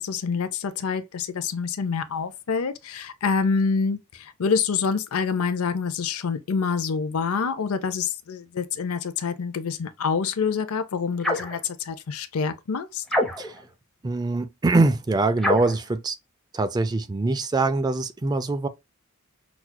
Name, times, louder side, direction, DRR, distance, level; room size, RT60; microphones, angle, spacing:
voice 1, 0.0-13.0, left 5 dB, 75° left, 0.5 m, -26 dB
sound 1, 11.2-11.6 13.1-13.6 15.4-15.8, left 1 dB, ahead, 0.8 m, -25 dB
voice 2, 14.0-16.2 16.5-18.7, right 3 dB, 20° right, 0.3 m, -23 dB
6.0 x 2.3 x 2.2 m
head